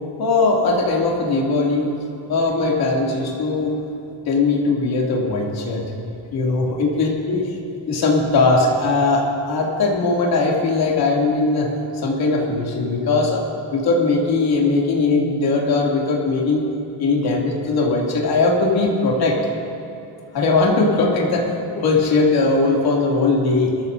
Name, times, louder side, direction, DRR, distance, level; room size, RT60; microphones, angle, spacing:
voice 1, 0.2-1.9 2.3-3.7 4.3-5.8 6.3-7.6 7.9-11.7 11.9-13.4 13.7-16.7 17.0-19.4 20.3-21.5 21.7-23.7, left 3 dB, 55° left, -2 dB, 2.9 m, -19 dB
22.0 x 14.0 x 2.7 m, 2.9 s
cardioid pair, 150°, 44 cm